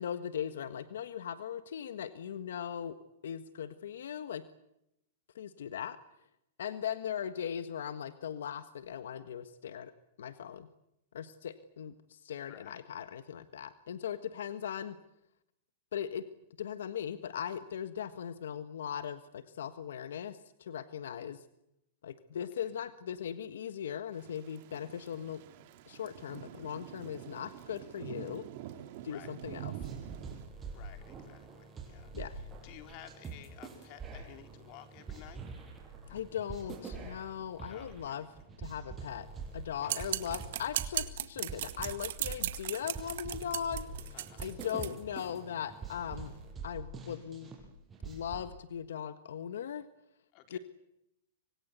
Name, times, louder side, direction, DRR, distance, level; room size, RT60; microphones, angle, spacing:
voice 1, 0.0-3.0 3.2-4.4 5.3-6.0 6.6-9.9 10.2-10.7 11.1-15.0 15.9-16.3 16.6-21.4 22.0-25.4 25.9-28.5 29.0-29.7 32.1-32.4 36.1-38.3 38.6-39.3 39.5-46.3 46.6-47.5 48.0-49.9 50.5-50.6, left 9 dB, 85° left, 12 dB, 1.5 m, -39 dB
voice 2, 12.5-12.8 22.6-22.7 29.1-29.4 30.7-35.4 37.7-38.3 39.8-40.1 44.1-44.5 50.3-50.6, left 12 dB, 40° left, 7 dB, 4.1 m, -54 dB
Thunder / Rain, 24.1-30.4, right 12 dB, 50° right, 3.0 m, -46 dB
sound 1, 29.4-48.5, right 4 dB, 15° right, 6.6 m, -45 dB
sound 2, 39.9-44.9, right 13 dB, 65° right, 2.0 m, -36 dB
26.0 x 22.0 x 8.3 m, 0.82 s
supercardioid pair, 150°, 0 cm